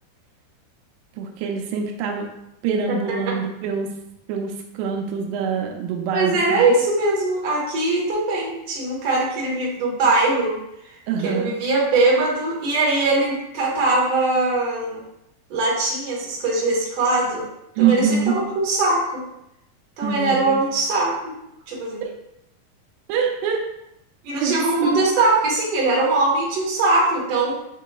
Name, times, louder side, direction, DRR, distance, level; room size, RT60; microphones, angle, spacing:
voice 1, 1.2-2.3 2.6-3.9 4.3-6.6 11.1-11.5 17.8-18.3 20.0-20.6 23.1-23.6 24.4-25.0, right 6 dB, 85° right, 1 dB, 2.7 m, -24 dB
voice 2, 2.9-3.4 6.1-15.0 15.5-17.5 17.8-19.2 20.0-21.4 21.7-22.0 24.2-27.5, right 2 dB, 60° right, -5 dB, 1.7 m, -21 dB
7.4 x 3.0 x 2.3 m, 0.82 s
omnidirectional pair, 4.6 m